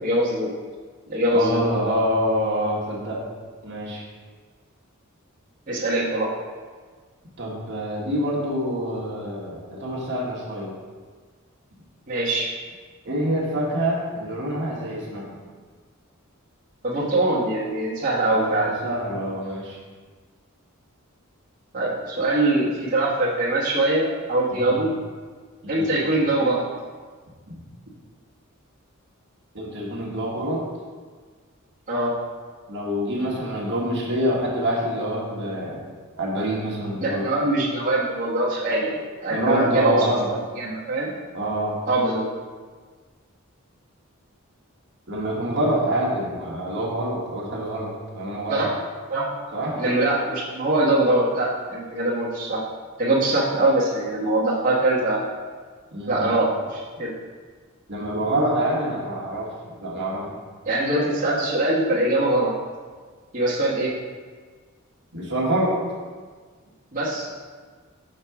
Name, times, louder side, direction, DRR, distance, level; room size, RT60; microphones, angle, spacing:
voice 1, 0.0-0.5 1.1-1.6 5.7-6.3 12.1-12.5 16.8-18.7 21.7-24.9 25.7-26.6 31.9-32.1 37.0-41.1 41.9-42.2 48.5-48.7 49.1-49.3 49.7-52.6 53.0-55.2 56.1-57.1 60.6-62.5 63.3-63.9 66.9-67.3, right 1 dB, 40° right, -9 dB, 1.3 m, -23 dB
voice 2, 1.3-3.2 3.6-4.0 7.4-10.7 13.0-15.4 18.3-19.8 24.5-24.8 25.6-25.9 27.5-27.6 29.5-30.6 32.7-35.8 36.2-37.3 39.3-40.3 41.3-41.8 45.1-48.6 49.5-49.8 55.9-56.3 57.9-59.5 59.8-60.3 65.1-65.8, equal, 55° right, -4 dB, 1.5 m, -26 dB
6.5 x 3.7 x 5.8 m, 1.5 s
head